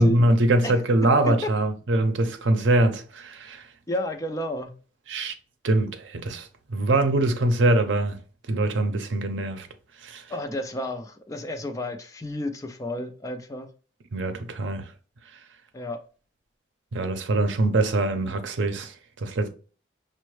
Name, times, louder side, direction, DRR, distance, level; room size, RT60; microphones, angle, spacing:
voice 1, 0.0-3.7 5.1-5.3 5.6-8.2 8.5-9.7 10.0-10.3 14.1-14.9 16.9-19.5, right 1 dB, 85° right, 0.6 m, -23 dB
voice 2, 3.9-4.8 10.3-13.7 15.7-16.0, left 1 dB, 15° left, 0.4 m, -31 dB
5.2 x 2.1 x 3.1 m
head